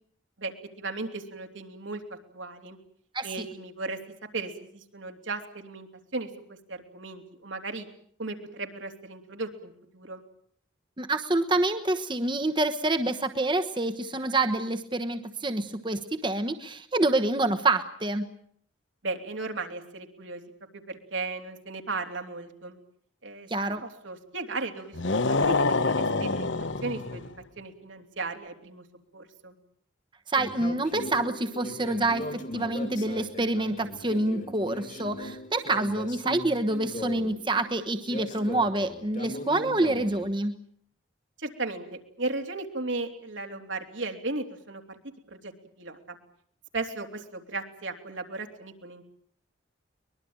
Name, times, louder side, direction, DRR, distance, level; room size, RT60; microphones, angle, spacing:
voice 1, 0.4-2.8 3.2-4.0 4.3-7.9 8.2-10.2 19.0-20.4 20.9-22.8 23.2-23.5 23.8-26.5 26.8-27.3 27.6-28.8 29.1-29.5 41.4-45.0 45.3-45.5 45.8-46.2 46.7-49.0, right 3 dB, 80° right, 4 dB, 3.3 m, -36 dB
voice 2, 11.0-18.3 23.5-23.8 30.3-40.6, right 2 dB, 25° right, 7 dB, 1.1 m, -27 dB
sound 1, 24.9-27.3, left 3 dB, 75° left, 1.1 m, -26 dB
sound 2, 30.4-40.3, left 1 dB, 40° left, 2.0 m, -39 dB
23.5 x 21.5 x 8.9 m, 0.64 s
head